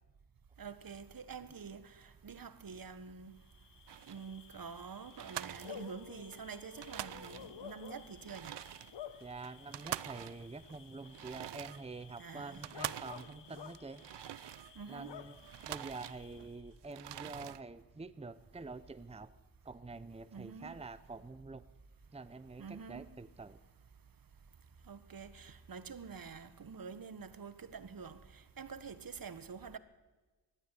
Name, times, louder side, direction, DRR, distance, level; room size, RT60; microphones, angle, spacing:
voice 1, 0.6-1.8 2.2-3.3 4.1-8.5 12.2-12.6 14.8-15.1 20.3-20.7 22.6-23.1 24.9-28.2 28.6-29.8, right 6 dB, 55° right, 1.5 m, -47 dB
Bark / Cricket, 3.4-16.7, left 9 dB, 80° left, 1.3 m, -53 dB
sound 1, 3.9-4.3 4.7-4.8 5.1-6.4 6.7-7.7 8.1-15.0 15.3-16.5 16.8-17.6, right 12 dB, 75° right, 0.7 m, -45 dB
voice 2, 9.2-14.0 14.9-15.4 15.7-19.3 19.6-21.6 22.1-23.6, right 3 dB, 15° right, 0.8 m, -47 dB
sound 2, 14.8-23.5, right 3 dB, 35° right, 4.6 m, -65 dB
21.5 x 13.0 x 10.0 m
cardioid pair, 70°, 42 cm